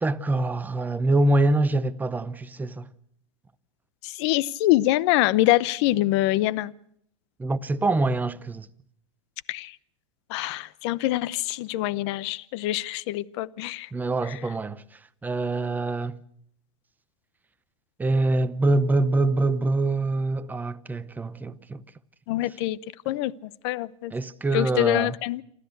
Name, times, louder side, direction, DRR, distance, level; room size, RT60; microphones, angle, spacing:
voice 1, 0.0-2.9 7.4-8.7 13.9-14.8 15.2-16.2 18.0-21.8 24.1-25.2, right 2 dB, 10° right, 0.8 m, -24 dB
voice 2, 4.0-6.7 9.5-9.7 10.3-13.9 14.3-14.4 22.3-22.8 23.1-23.3 23.6-24.1 24.5-25.4, left 16 dB, 55° left, 0.8 m, -24 dB
28.0 x 13.0 x 8.0 m
supercardioid pair, 130°, 17 cm